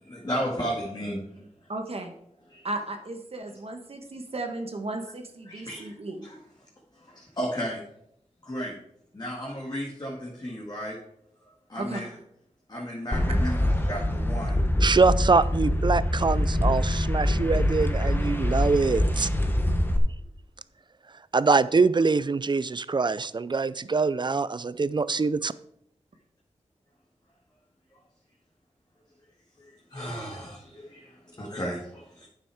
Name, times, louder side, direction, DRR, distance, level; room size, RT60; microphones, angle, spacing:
voice 1, 0.1-1.2 5.5-5.8 6.2-6.4 7.4-7.8 8.5-8.7 9.1-11.0 11.7-12.2 12.7-14.6 29.9-30.6 31.4-31.8, equal, 35° left, -3 dB, 2.1 m, -33 dB
voice 2, 1.7-2.1 2.6-6.3 11.8-12.0, right 2 dB, 55° right, 4 dB, 1.3 m, -35 dB
sound 1, 13.1-20.0, left 1 dB, 15° left, 1.1 m, -24 dB
voice 3, 14.8-19.3 21.3-25.5, right 4 dB, 40° right, 17 dB, 0.4 m, -24 dB
9.2 x 7.0 x 4.9 m, 0.75 s
wide cardioid pair, 75°, 12 cm